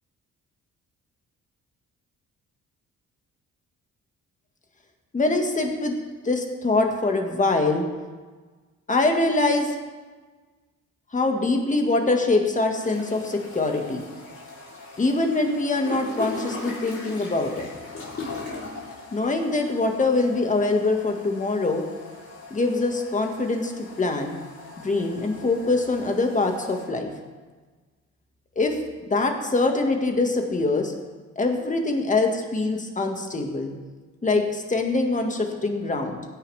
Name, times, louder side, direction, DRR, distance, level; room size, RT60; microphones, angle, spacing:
voice 1, 5.1-6.0 6.2-7.8 8.9-9.7 11.1-14.0 15.0-17.7 19.1-21.8 22.5-24.4 24.8-27.1 28.6-28.8 29.1-30.9 31.4-33.7 34.2-36.2, left 3 dB, 25° left, 3 dB, 1.9 m, -24 dB
sound 1, 12.8-26.9, left 3 dB, 45° left, 3.9 m, -39 dB
16.5 x 9.9 x 3.5 m, 1.4 s
cardioid pair, 90°, 30 cm